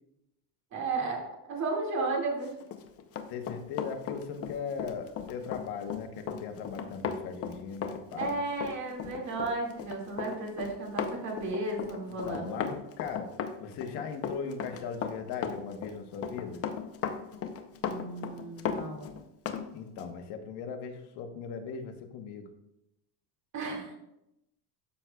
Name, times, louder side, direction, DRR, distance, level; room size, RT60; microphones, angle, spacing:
voice 1, 0.7-2.5 8.2-12.6 17.8-19.2 23.5-24.0, right 3 dB, 35° right, -1 dB, 2.2 m, -34 dB
Run, 2.6-19.7 20.0-20.1, left 7 dB, 30° left, 0.6 m, -36 dB
voice 2, 3.3-8.4 12.2-13.3 13.6-16.6 19.7-22.5, left 6 dB, 55° left, 5 dB, 1.1 m, -38 dB
12.5 x 6.1 x 2.3 m, 0.86 s
cardioid pair, 155°, 47 cm